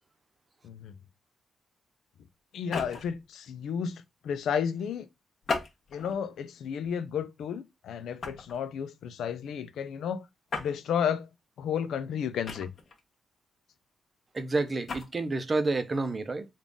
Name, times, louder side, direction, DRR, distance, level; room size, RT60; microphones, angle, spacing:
voice 1, 2.5-5.1 5.9-10.2 10.6-11.3 11.6-12.7, left 7 dB, 90° left, 0.4 m, -32 dB
sound 1, 2.5-3.2 5.4-6.2 6.8-7.0 8.2-8.6 10.5-10.7 12.4-13.0 14.7-15.1, left 4 dB, 50° left, 0.9 m, -35 dB
voice 2, 14.3-16.4, right 3 dB, 30° right, 0.5 m, -29 dB
3.7 x 2.3 x 3.6 m
cardioid pair, 115°, 0 cm